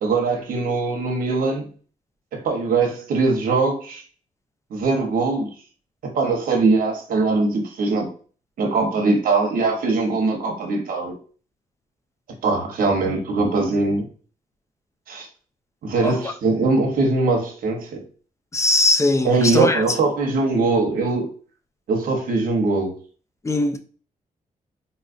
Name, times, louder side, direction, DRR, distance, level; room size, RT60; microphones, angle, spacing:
voice 1, 0.0-1.7 2.3-4.0 4.7-5.5 6.0-8.1 8.6-11.2 12.4-14.1 15.1-15.3 15.8-18.0 19.2-21.3 21.9-23.0, right 3 dB, 85° right, 0.9 m, -21 dB
voice 2, 18.5-19.8 23.4-23.8, left 2 dB, 20° left, 0.4 m, -20 dB
4.0 x 2.4 x 2.4 m
cardioid pair, 95°, 14 cm